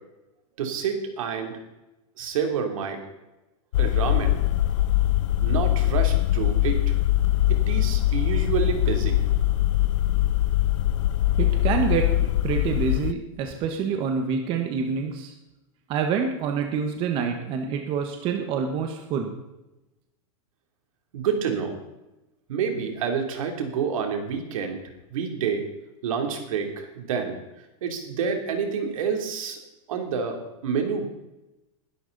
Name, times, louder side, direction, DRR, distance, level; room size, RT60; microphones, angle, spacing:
voice 1, 0.6-1.6 2.2-3.0 3.8-4.4 5.4-6.9 7.5-9.2 21.1-21.8 22.5-24.8 25.1-25.6 26.0-27.4 27.8-29.6 29.9-31.1, right 6 dB, 80° right, 3 dB, 3.4 m, -28 dB
sound 1, 3.7-13.1, left 14 dB, 65° left, 0.6 m, -22 dB
voice 2, 11.4-15.3 15.9-19.3, right 6 dB, 30° right, 4 dB, 1.4 m, -27 dB
21.0 x 12.0 x 4.1 m, 0.97 s
supercardioid pair, 165°, 17 cm